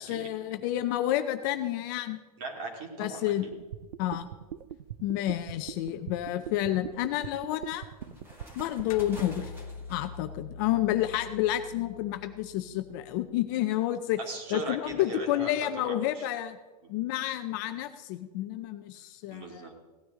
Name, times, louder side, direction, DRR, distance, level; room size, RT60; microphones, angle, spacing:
voice 1, 0.0-2.2 3.0-3.5 4.0-4.3 5.0-7.8 8.6-9.5 9.9-14.2 14.5-16.6 16.9-19.6, left 13 dB, 30° left, 9 dB, 0.5 m, -30 dB
voice 2, 2.4-3.5 8.1-8.2 14.2-16.3 19.3-19.7, right 2 dB, 40° right, 2 dB, 2.7 m, -39 dB
sound 1, 3.5-9.4, right 11 dB, 80° right, 0.6 m, -41 dB
sound 2, 4.6-5.0 5.6-10.2, equal, 10° right, 2.0 m, -51 dB
sound 3, 8.9-13.6, left 4 dB, 65° left, 1.2 m, -45 dB
17.0 x 9.9 x 3.8 m, 1.3 s
supercardioid pair, 165°, 20 cm